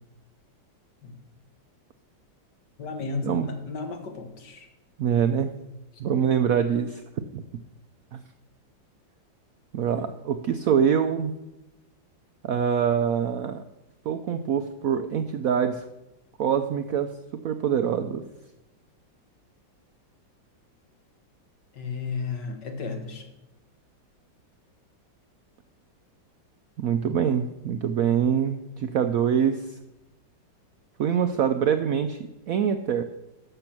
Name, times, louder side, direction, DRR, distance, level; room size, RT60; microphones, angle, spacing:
voice 1, 2.8-4.7 6.1-6.4 10.0-10.1 21.7-23.3, left 4 dB, 65° left, 5 dB, 2.0 m, -34 dB
voice 2, 5.0-5.5 6.0-7.0 7.3-7.4 8.1-8.2 9.7-11.3 12.4-13.6 14.1-15.9 16.4-17.1 17.4-18.2 26.8-29.8 31.0-32.2 32.5-33.0, right 8 dB, 75° right, 8 dB, 0.8 m, -24 dB
12.0 x 6.9 x 5.9 m, 0.98 s
omnidirectional pair, 2.1 m